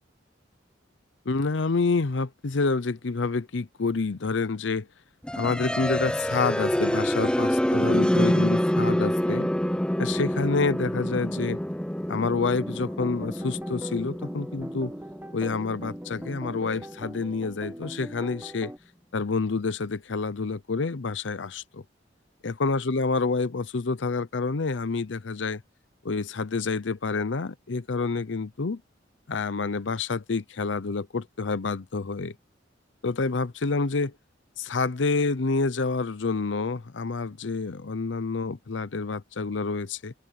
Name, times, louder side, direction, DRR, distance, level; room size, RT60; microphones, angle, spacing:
voice 1, 1.3-4.9 5.4-9.5 10.0-11.6 12.1-14.9 15.3-18.7 19.1-21.8 22.4-25.6 26.0-28.8 29.3-32.3 33.0-34.1 34.6-40.1, left 4 dB, 80° left, 0.7 m, -28 dB
sound 1, 5.2-17.1, equal, 5° left, 0.8 m, -27 dB
sound 2, 12.4-18.8, equal, 10° right, 1.7 m, -41 dB
open air
head